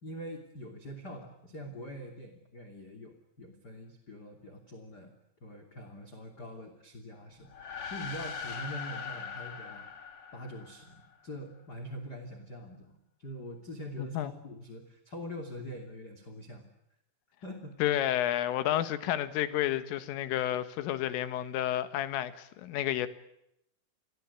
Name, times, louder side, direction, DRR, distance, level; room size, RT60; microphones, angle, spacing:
voice 1, 0.0-5.1 5.4-9.9 10.3-16.7 17.4-17.8, equal, 25° left, 2.3 m, -44 dB
sound 1, 7.4-11.1, left 6 dB, 55° left, 1.6 m, -41 dB
voice 2, 14.0-14.3 17.8-23.1, left 12 dB, 80° left, 3.9 m, -30 dB
29.5 x 22.5 x 8.4 m
omnidirectional pair, 5.9 m